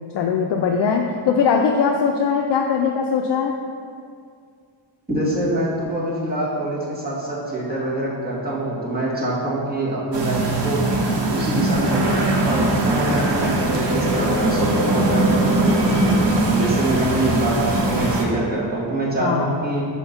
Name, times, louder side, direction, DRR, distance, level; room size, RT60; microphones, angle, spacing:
voice 1, 0.1-3.5 19.2-19.5, left 6 dB, 65° left, 2 dB, 0.5 m, -20 dB
voice 2, 5.1-10.9 11.3-19.9, right 1 dB, 20° right, -6 dB, 1.6 m, -25 dB
sound 1, 10.1-18.2, right 2 dB, 70° right, 1.0 m, -20 dB
5.7 x 4.4 x 5.6 m, 2.2 s
wide cardioid pair, 160°, 45 cm